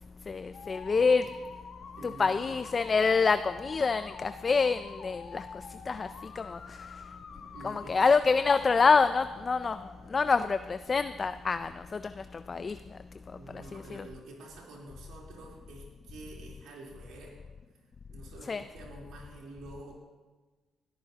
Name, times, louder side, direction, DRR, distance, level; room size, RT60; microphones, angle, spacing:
voice 1, 0.3-1.3 2.0-7.0 7.6-13.0 13.5-14.1 18.5-18.6, left 4 dB, 35° left, 11 dB, 0.4 m, -27 dB
sound 1, 0.5-9.9, left 6 dB, 60° left, 1.0 m, -47 dB
voice 2, 2.0-2.6 7.3-8.0 13.4-17.4 18.1-20.0, right 2 dB, 85° right, -3 dB, 3.6 m, -48 dB
20.0 x 13.5 x 2.9 m, 1.3 s
cardioid pair, 90°, 0 cm